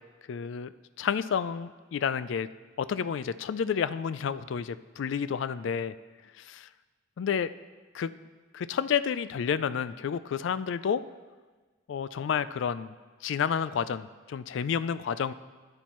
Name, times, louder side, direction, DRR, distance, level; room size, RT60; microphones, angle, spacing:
voice 1, 0.3-0.7 1.0-2.5 2.8-5.9 6.4-6.7 7.2-7.5 7.9-8.1 8.5-11.0 11.9-12.9 13.2-15.3, left 7 dB, 65° left, 15 dB, 0.3 m, -30 dB
13.5 x 8.8 x 3.0 m, 1.4 s
head